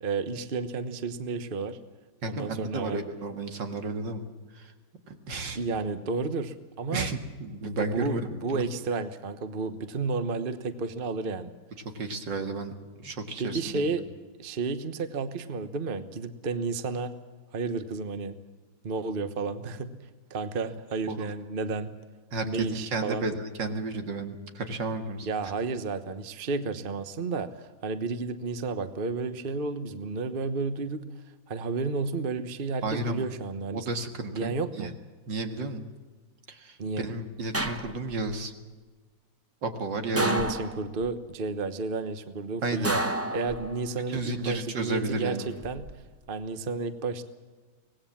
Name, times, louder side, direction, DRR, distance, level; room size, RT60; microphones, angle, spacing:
voice 1, 0.0-1.8 2.2-3.0 5.5-7.1 7.6-11.5 13.4-14.0 14.4-17.1 17.5-18.4 18.8-19.9 20.3-22.0 22.4-23.3 25.2-31.1 31.5-33.9 34.3-34.9 35.6-35.7 36.8-37.1 40.1-43.0 43.3-45.4 45.6-45.9 46.3-47.2, right 4 dB, 35° right, 10 dB, 1.1 m, -32 dB
voice 2, 2.2-4.3 4.5-4.7 5.1-5.6 6.9-8.7 11.9-13.9 21.1-21.3 22.3-25.3 32.8-33.3 33.7-34.9 35.3-35.8 36.5-38.5 39.6-40.4 42.6-43.0 44.1-45.5, right 2 dB, 70° right, 6 dB, 2.6 m, -33 dB
sound 1, 37.5-38.3 40.2-41.1 42.8-44.0 45.4-45.9, right 1 dB, 15° right, 0.6 m, -31 dB
24.5 x 19.0 x 7.4 m, 1.3 s
omnidirectional pair, 2.0 m